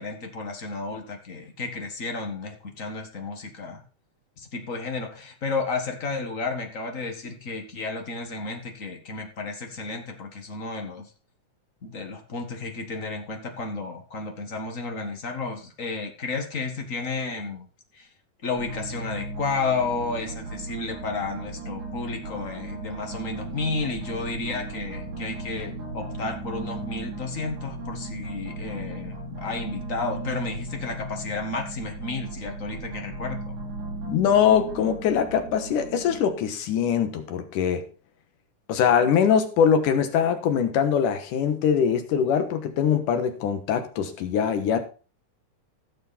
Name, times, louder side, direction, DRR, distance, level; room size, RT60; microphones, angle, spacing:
voice 1, 0.0-3.8 4.4-11.1 11.8-17.7 17.9-18.1 18.4-33.6, left 3 dB, 35° left, 3 dB, 1.5 m, -32 dB
sound 1, 18.5-36.3, right 2 dB, 75° right, 4.1 m, -36 dB
voice 2, 34.1-37.8 38.7-44.8, left 8 dB, 80° left, 7 dB, 2.8 m, -22 dB
15.5 x 6.8 x 4.3 m, 0.36 s
omnidirectional pair, 3.7 m